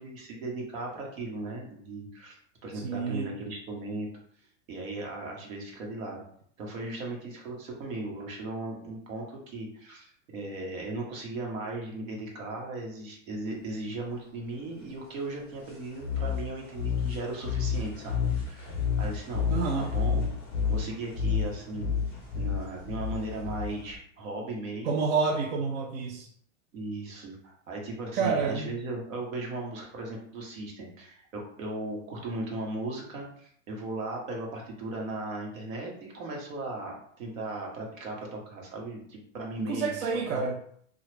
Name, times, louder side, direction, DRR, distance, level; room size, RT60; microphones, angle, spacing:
voice 1, 0.0-4.1 4.7-6.2 6.6-19.5 19.8-20.3 20.7-21.9 22.3-25.0 26.7-40.4, right 2 dB, 80° right, -1 dB, 1.2 m, -37 dB
voice 2, 2.8-3.3 19.5-19.9 24.8-26.3 28.2-28.7 39.6-40.6, right 5 dB, 65° right, 2 dB, 0.5 m, -28 dB
sound 1, 16.0-24.0, left 6 dB, 5° left, 0.5 m, -30 dB
2.9 x 2.4 x 3.2 m, 0.63 s
supercardioid pair, 175°, 39 cm